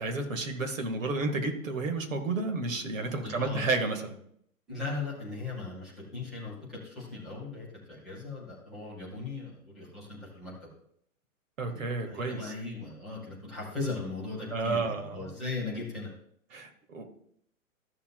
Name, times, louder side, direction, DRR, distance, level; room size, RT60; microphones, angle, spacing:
voice 1, 0.0-4.1 11.6-12.5 14.5-15.3 16.5-17.1, right 3 dB, 65° right, 5 dB, 1.8 m, -31 dB
voice 2, 3.2-3.7 4.7-10.7 11.7-16.1, left 3 dB, ahead, -8 dB, 0.3 m, -38 dB
13.5 x 7.2 x 2.3 m, 0.68 s
figure-of-eight pair, 115°, 41 cm